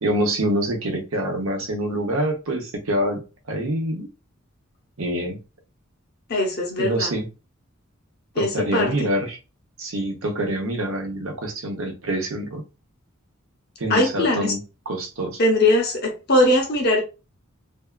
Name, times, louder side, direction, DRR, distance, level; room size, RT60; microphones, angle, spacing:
voice 1, 0.0-3.2 3.5-4.1 5.0-5.4 6.8-7.3 8.3-9.4 9.8-12.6 13.8-14.6 14.9-15.4, right 1 dB, 75° right, 0.8 m, -25 dB
voice 2, 6.3-7.1 8.4-9.1 13.9-14.5 15.4-17.0, left 1 dB, 50° left, 0.8 m, -20 dB
2.7 x 2.3 x 2.3 m
head